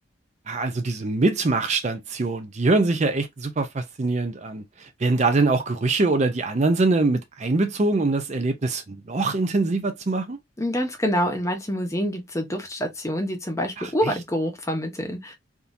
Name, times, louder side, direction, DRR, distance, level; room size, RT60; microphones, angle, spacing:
voice 1, 0.5-10.4 13.8-13.9, right 3 dB, 35° right, 0.5 m, -23 dB
voice 2, 10.6-15.3, equal, 15° left, 0.8 m, -26 dB
3.5 x 2.8 x 2.5 m
head